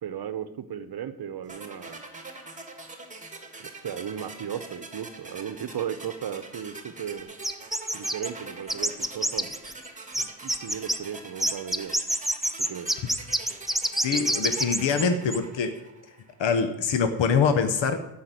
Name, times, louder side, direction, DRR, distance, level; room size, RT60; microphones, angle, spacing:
voice 1, 0.0-2.0 3.6-7.3 7.9-9.6 10.2-11.9 12.6-12.9, right 9 dB, 60° right, 11 dB, 0.8 m, -36 dB
sound 1, 1.5-16.4, right 3 dB, 15° right, 1.5 m, -44 dB
sound 2, 7.4-8.3 8.7-9.9 10.1-11.0 11.4-15.0 15.3-15.4, right 1 dB, ahead, 0.5 m, -26 dB
voice 2, 14.0-15.8 16.4-18.1, left 5 dB, 85° left, 9 dB, 1.0 m, -24 dB
12.0 x 5.8 x 8.9 m, 0.92 s
wide cardioid pair, 160°, 43 cm